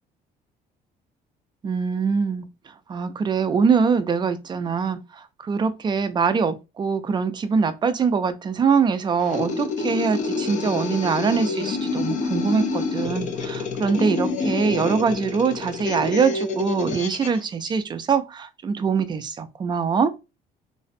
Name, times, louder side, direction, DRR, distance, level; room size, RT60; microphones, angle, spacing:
voice 1, 1.6-2.5 2.9-5.0 5.4-20.1, right 5 dB, 25° right, 0.3 m, -23 dB
sound 1, 9.2-17.4, left 4 dB, 45° left, 0.5 m, -28 dB
2.5 x 2.1 x 2.5 m
cardioid pair, 110°, 17 cm